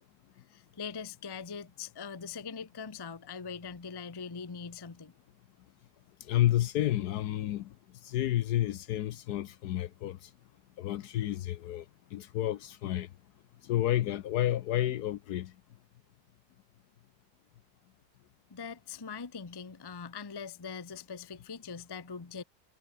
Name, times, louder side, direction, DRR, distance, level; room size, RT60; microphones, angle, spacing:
voice 1, 0.5-5.1 18.5-22.4, left 6 dB, 25° left, 0.5 m, -42 dB
voice 2, 6.2-7.7 8.0-10.3 10.8-11.8 12.1-13.1 13.6-15.5, left 13 dB, 70° left, 1.1 m, -30 dB
omnidirectional pair, 2.0 m